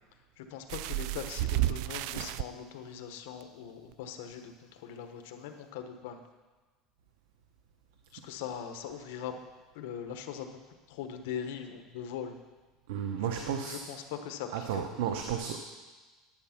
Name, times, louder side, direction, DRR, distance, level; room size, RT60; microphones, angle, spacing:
voice 1, 0.4-6.2 8.1-9.3 9.7-12.4 13.2-14.8, left 8 dB, 85° left, 6 dB, 1.2 m, -41 dB
sound 1, 0.7-2.4 3.4-3.5 3.9-4.0, right 16 dB, 65° right, 0.3 m, -31 dB
voice 2, 12.9-13.8 14.5-15.6, right 8 dB, 90° right, 5 dB, 0.9 m, -33 dB
11.0 x 8.1 x 5.9 m, 1.3 s
cardioid pair, 145°, 0 cm